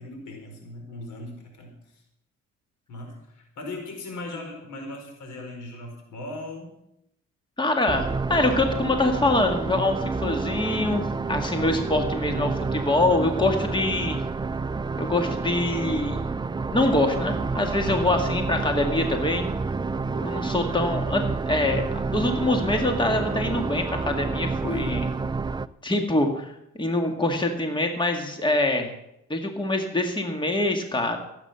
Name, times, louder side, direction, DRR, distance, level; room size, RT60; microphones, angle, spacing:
voice 1, 0.0-2.0 2.9-6.7 17.8-17.9 24.5-25.0, left 2 dB, 80° left, 3 dB, 4.5 m, -38 dB
voice 2, 7.6-14.2 15.0-16.2 16.7-19.5 20.1-25.1 25.8-26.5 26.8-28.9 29.3-31.2, left 2 dB, 15° left, 4 dB, 1.9 m, -24 dB
sound 1, 7.9-25.7, right 4 dB, 15° right, 0.4 m, -29 dB
15.5 x 8.5 x 6.9 m, 0.81 s
cardioid pair, 90°, 30 cm